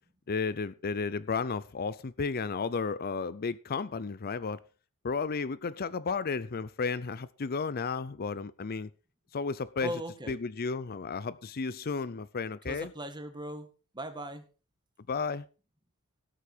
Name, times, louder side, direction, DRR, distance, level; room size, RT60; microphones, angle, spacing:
voice 1, 0.3-4.6 5.0-8.9 9.3-10.0 10.3-12.9 15.1-15.4, left 4 dB, 45° left, 0.5 m, -33 dB
voice 2, 9.8-10.4 12.7-13.7 13.9-14.4, right 1 dB, 20° right, 1.9 m, -38 dB
18.0 x 8.4 x 4.5 m
head